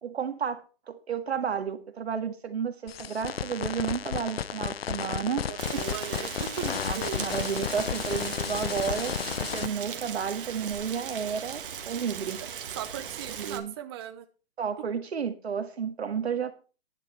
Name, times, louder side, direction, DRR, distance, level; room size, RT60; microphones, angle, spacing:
voice 1, 0.0-5.4 6.4-12.4 13.4-13.7 14.6-16.5, right 7 dB, 85° right, 1.9 m, -32 dB
sound 1, 2.9-9.7, left 8 dB, 70° left, 0.8 m, -33 dB
voice 2, 5.3-6.5 6.9-7.3 12.4-12.5 12.8-14.3, right 10 dB, 25° right, 0.7 m, -38 dB
Rain, 5.6-13.6, right 8 dB, 55° right, 1.8 m, -38 dB
10.5 x 10.0 x 4.3 m
hypercardioid pair, 155°, 31 cm